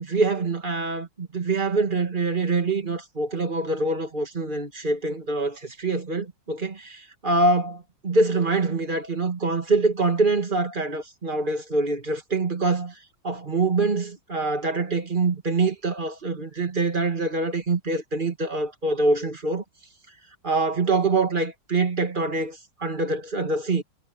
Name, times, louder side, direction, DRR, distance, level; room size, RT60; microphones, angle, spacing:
voice 1, 0.0-12.9 13.2-19.6 20.4-23.8, right 3 dB, 25° right, 2.0 m, -25 dB
omnidirectional pair, 2.1 m